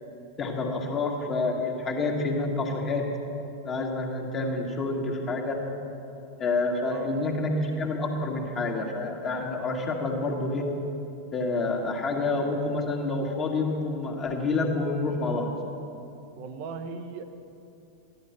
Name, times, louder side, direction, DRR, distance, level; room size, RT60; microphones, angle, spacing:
voice 1, 0.4-3.1 3.6-5.6 6.4-10.7 11.3-15.5, left 3 dB, 25° left, 1 dB, 2.0 m, -28 dB
voice 2, 16.4-17.3, right 5 dB, 45° right, 8 dB, 1.0 m, -37 dB
13.5 x 11.0 x 6.0 m, 2.7 s
figure-of-eight pair, 90°, 0 cm